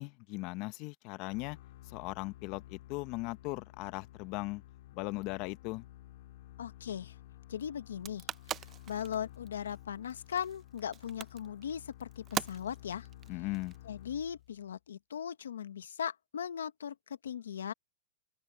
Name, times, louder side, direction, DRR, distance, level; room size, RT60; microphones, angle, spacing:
voice 1, 0.0-1.6 1.9-4.6 4.9-5.8 13.3-13.7, left 22 dB, 45° left, 0.9 m, -38 dB
sound 1, 1.3-14.7, left 16 dB, 65° left, 3.6 m, -53 dB
voice 2, 6.6-7.1 7.5-8.3 8.9-13.1 13.8-17.7, left 8 dB, 85° left, 1.1 m, -38 dB
sound 2, 7.9-14.2, right 10 dB, 25° right, 0.7 m, -42 dB
open air
hypercardioid pair, 125°, 0 cm